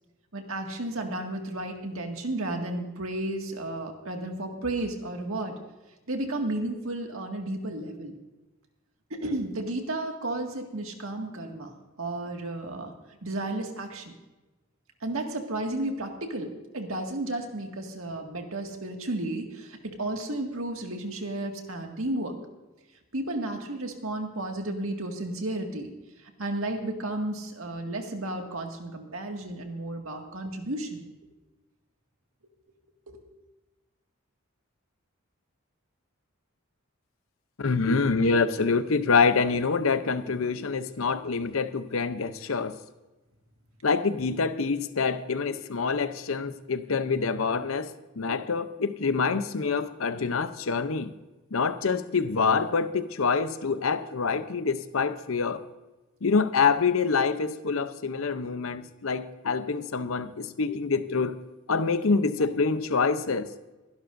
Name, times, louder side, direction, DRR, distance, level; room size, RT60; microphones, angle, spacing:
voice 1, 0.3-5.5 6.1-8.2 9.1-11.7 12.0-12.9 13.2-14.1 15.0-22.3 23.1-25.9 26.2-31.1 33.1-33.2, right 2 dB, 75° right, 3 dB, 2.0 m, -33 dB
voice 2, 37.6-42.8 43.8-51.1 51.5-55.6 56.2-61.4 61.7-63.5, left 4 dB, 75° left, 12 dB, 0.7 m, -26 dB
23.0 x 11.5 x 2.6 m, 1.1 s
head